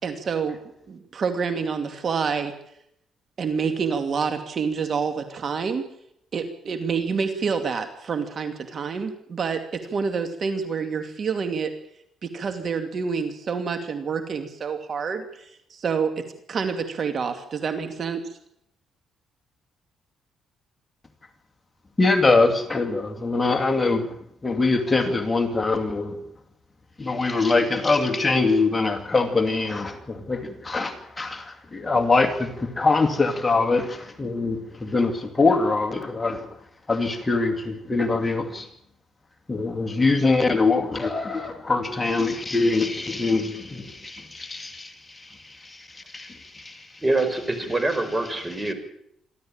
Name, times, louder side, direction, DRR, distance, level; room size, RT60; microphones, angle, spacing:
voice 1, 0.0-0.6 0.9-2.5 3.4-5.9 6.3-11.7 12.2-18.3, right 5 dB, 50° right, 2.5 m, -28 dB
voice 2, 22.0-24.2 24.4-26.2 27.0-36.6 36.9-38.7 39.5-47.0 48.6-48.7, left 3 dB, 20° left, 2.4 m, -23 dB
voice 3, 47.0-48.7, right 2 dB, 20° right, 5.1 m, -24 dB
27.0 x 12.5 x 8.8 m
cardioid pair, 90°, 0 cm